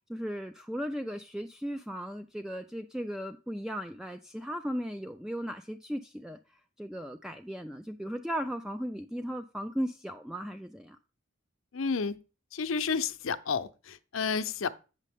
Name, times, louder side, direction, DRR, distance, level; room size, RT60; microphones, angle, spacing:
voice 1, 0.1-11.0, equal, 5° right, 0.3 m, -36 dB
voice 2, 11.7-12.2 12.5-14.7, left 5 dB, 85° left, 0.6 m, -31 dB
8.3 x 6.5 x 3.5 m
head